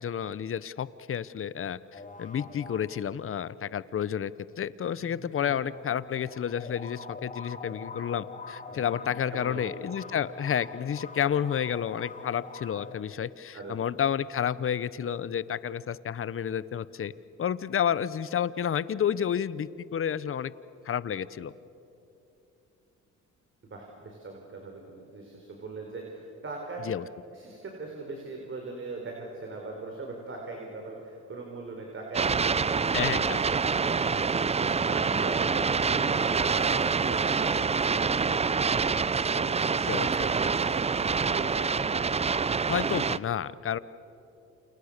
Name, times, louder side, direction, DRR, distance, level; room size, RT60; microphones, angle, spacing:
voice 1, 0.0-17.1 17.4-20.5 20.8-21.5 26.9-27.0 32.9-33.4 39.9-40.3 42.7-43.8, left 9 dB, 45° left, 17 dB, 0.9 m, -30 dB
sound 1, 1.9-3.6 4.9-13.0, left 4 dB, 25° left, 2.4 m, -44 dB
voice 2, 8.7-9.7 12.7-12.8 13.5-13.9 23.6-26.9 27.3-41.7, right 3 dB, 40° right, 1 dB, 4.6 m, -41 dB
sound 2, 32.1-43.2, right 5 dB, 20° right, 0.5 m, -26 dB
29.0 x 29.0 x 6.7 m, 2.9 s
cardioid pair, 90°, 30 cm